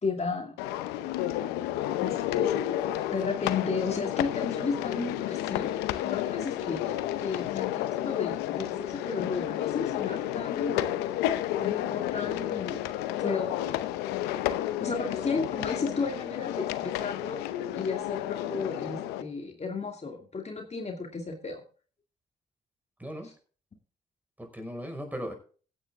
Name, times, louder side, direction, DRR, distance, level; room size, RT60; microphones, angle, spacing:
voice 1, 0.0-0.5 2.0-2.7 3.1-5.7 6.0-10.9 11.6-12.8 13.2-13.5 14.8-17.4 17.7-21.6, left 4 dB, 40° left, 2 dB, 2.6 m, -33 dB
sound 1, 0.6-19.2, left 13 dB, 85° left, 0.7 m, -31 dB
voice 2, 23.0-23.3 24.4-25.3, equal, 10° right, 5 dB, 5.4 m, -38 dB
15.5 x 9.6 x 3.6 m, 0.39 s
hypercardioid pair, 45°, 16 cm